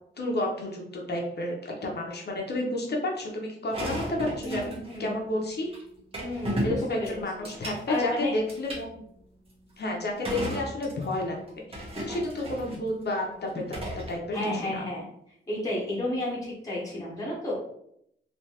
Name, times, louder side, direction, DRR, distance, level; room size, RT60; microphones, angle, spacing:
voice 1, 0.2-4.7 5.0-5.7 6.6-9.0 9.8-11.4 11.7-13.8 14.1-14.4 14.7-14.8, left 1 dB, 55° left, -1 dB, 0.8 m, -31 dB
sound 1, 3.7-5.0 5.7-5.8 6.1-8.0 8.5-8.8 10.2-11.2 11.5-12.8 13.5-14.1, right 1 dB, 30° right, 1.0 m, -34 dB
voice 2, 4.4-5.2 6.2-7.2 7.9-8.3 14.3-15.1 15.5-17.6, left 1 dB, 15° left, -5 dB, 0.9 m, -32 dB
3.2 x 2.8 x 2.8 m, 0.73 s
wide cardioid pair, 125°, 20 cm